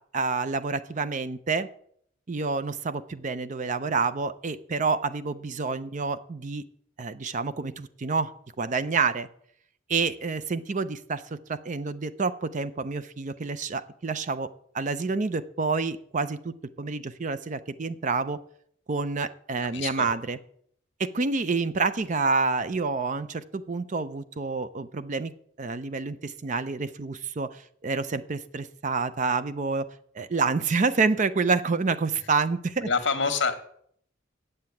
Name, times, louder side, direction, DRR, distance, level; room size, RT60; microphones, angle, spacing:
voice 1, 0.1-1.7 2.3-6.6 7.0-8.3 8.6-9.3 9.9-14.5 14.7-18.4 18.9-20.4 21.0-25.3 25.6-29.9 30.2-32.9, right 4 dB, 40° right, 14 dB, 0.5 m, -28 dB
voice 2, 19.6-20.1 32.2-32.3 32.8-33.6, left 5 dB, 60° left, 8 dB, 1.4 m, -27 dB
7.9 x 7.7 x 8.4 m, 0.66 s
head